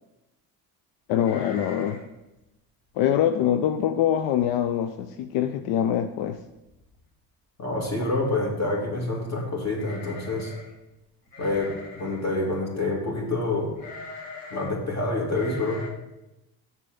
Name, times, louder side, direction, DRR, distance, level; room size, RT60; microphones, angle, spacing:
voice 1, 1.1-2.0 2.9-6.4, left 10 dB, 80° left, 8 dB, 0.6 m, -24 dB
sound 1, 1.2-2.2 2.4-2.5 3.0-3.3 3.8-3.9 4.2-4.7 5.0-5.1 6.2-6.3 6.6-7.1 9.7-10.7 11.3-12.3 13.8-14.7 15.3-15.9, left 3 dB, 60° left, 2.2 m, -42 dB
voice 2, 7.6-10.5 11.4-13.7 14.5-15.8, left 2 dB, 35° left, -1 dB, 2.7 m, -27 dB
6.9 x 4.5 x 6.9 m, 0.95 s
supercardioid pair, 75°, 44 cm